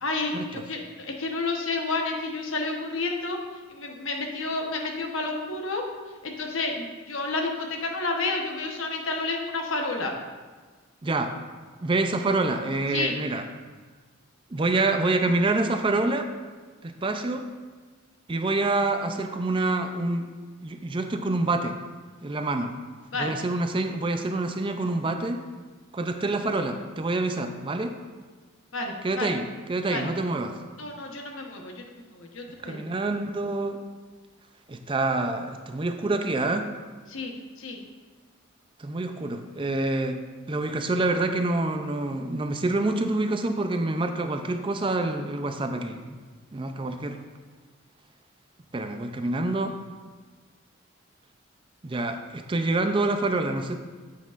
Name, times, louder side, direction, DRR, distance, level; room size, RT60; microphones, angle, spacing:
voice 1, 0.0-3.4 3.7-5.8 6.2-10.1 12.9-13.1 23.1-23.3 28.7-29.3 29.9-30.1 30.8-32.8 37.1-37.3 37.6-37.8, left 3 dB, 75° left, 2 dB, 1.1 m, -30 dB
voice 2, 11.0-11.3 11.8-13.4 14.5-16.3 16.8-17.5 18.3-20.3 20.6-21.8 22.2-22.7 23.1-25.4 25.9-27.9 29.0-30.6 32.6-33.8 34.7-36.7 38.8-40.2 40.5-46.2 46.5-47.2 48.7-49.8 51.8-53.7, right 2 dB, 25° right, 6 dB, 0.4 m, -27 dB
9.3 x 8.2 x 2.5 m, 1.4 s
head